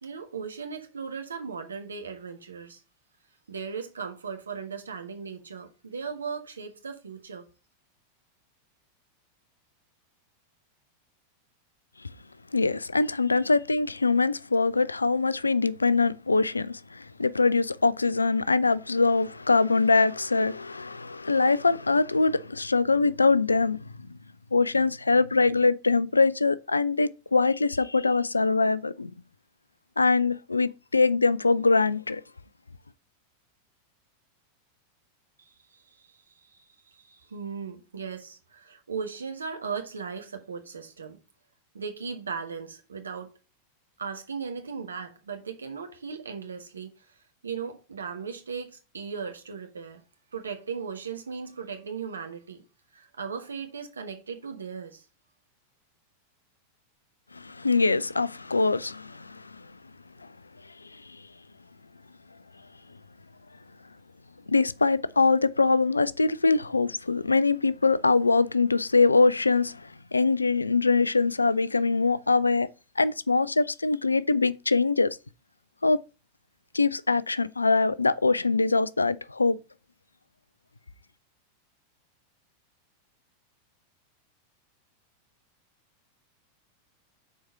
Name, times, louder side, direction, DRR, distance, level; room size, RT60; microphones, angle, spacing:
voice 1, 0.0-2.8 3.5-7.4 35.7-35.8 36.5-36.6 37.0-41.2 41.7-43.3 44.0-46.9 47.4-50.0 50.3-52.6 52.9-55.0, right 6 dB, 75° right, 1.3 m, -37 dB
voice 2, 12.5-24.2 24.5-29.1 30.0-32.2 57.3-59.7 60.9-61.2 64.5-72.7 73.0-75.2 75.8-76.0 76.7-79.6, left 3 dB, 80° left, 0.4 m, -23 dB
6.4 x 4.5 x 5.7 m
figure-of-eight pair, 90°, 0 cm